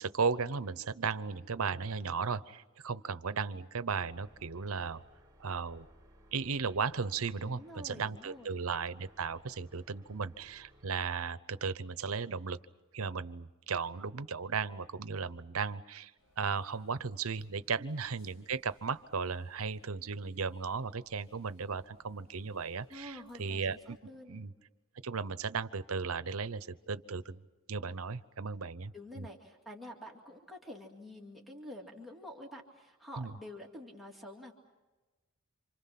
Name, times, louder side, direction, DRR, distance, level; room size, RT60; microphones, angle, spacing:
voice 1, 0.0-5.0 5.4-5.9 6.3-12.6 12.9-16.1 16.4-24.0 24.3-24.5 25.0-27.4 27.7-29.3 33.2-33.3, right 5 dB, 70° right, 15 dB, 0.8 m, -36 dB
sound 1, 3.9-11.2, equal, 15° right, 3.6 m, -62 dB
voice 2, 7.4-8.6 17.8-17.9 22.9-24.4 28.5-28.6 28.9-34.5, left 1 dB, ahead, 0 dB, 2.3 m, -48 dB
sound 2, 16.2-24.0, equal, 75° left, 7.0 m, -70 dB
28.5 x 26.5 x 5.9 m, 1.2 s
head